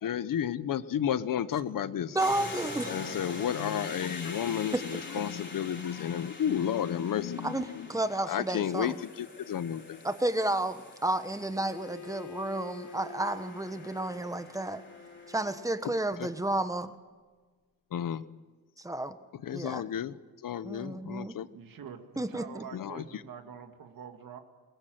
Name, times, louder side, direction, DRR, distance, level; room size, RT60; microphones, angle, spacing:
voice 1, 0.0-2.2 2.9-7.9 8.3-10.0 16.2-16.3 17.9-18.2 19.3-21.5 22.7-23.0, left 9 dB, 70° left, 1.0 m, -32 dB
voice 2, 2.1-2.9 4.7-4.8 7.4-9.0 10.0-14.8 15.3-16.9 18.8-19.2 19.5-19.8 20.6-21.4 22.2-22.6, right 1 dB, 10° right, 1.2 m, -31 dB
sound 1, 2.2-16.3, left 2 dB, 35° left, 3.8 m, -45 dB
Bowed string instrument, 11.5-16.2, left 6 dB, 55° left, 2.9 m, -48 dB
voice 3, 21.5-24.4, right 7 dB, 75° right, 2.1 m, -46 dB
23.5 x 19.5 x 7.8 m
wide cardioid pair, 125°, 34 cm